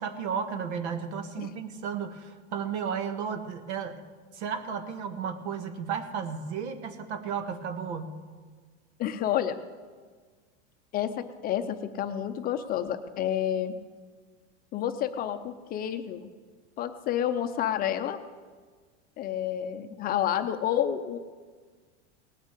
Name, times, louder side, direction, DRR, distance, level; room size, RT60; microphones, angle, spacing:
voice 1, 0.0-4.0 4.3-8.2, right 7 dB, 70° right, 9 dB, 1.6 m, -33 dB
voice 2, 9.0-9.6 10.9-13.7 14.7-16.2 16.8-18.2 19.2-21.2, left 10 dB, 25° left, 8 dB, 0.6 m, -29 dB
18.5 x 6.2 x 8.2 m, 1.5 s
supercardioid pair, 145°, 35 cm